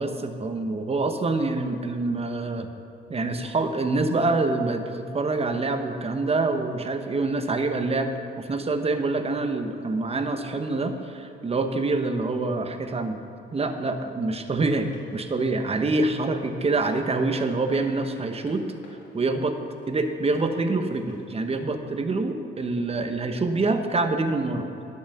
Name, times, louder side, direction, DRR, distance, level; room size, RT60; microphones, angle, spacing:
voice 1, 0.0-2.7 3.1-13.2 13.5-18.6 19.1-19.6 19.9-24.7, right 3 dB, 30° right, 7 dB, 1.0 m, -26 dB
sound 1, 14.7-21.6, left 3 dB, 75° left, 2.4 m, -52 dB
10.5 x 7.1 x 6.7 m, 2.9 s
cardioid pair, 80°, 20 cm